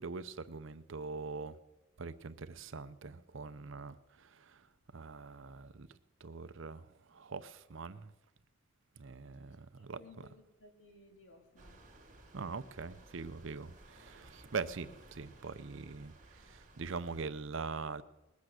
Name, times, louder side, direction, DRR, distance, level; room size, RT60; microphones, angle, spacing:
voice 1, 0.0-1.6 2.0-4.6 4.9-5.9 6.2-8.1 9.0-10.0 12.3-18.0, right 4 dB, 60° right, 0.6 m, -43 dB
voice 2, 9.8-11.8, left 2 dB, 60° left, 2.3 m, -59 dB
sound 1, 11.6-17.3, right 2 dB, 35° right, 2.4 m, -58 dB
20.5 x 8.4 x 6.4 m
head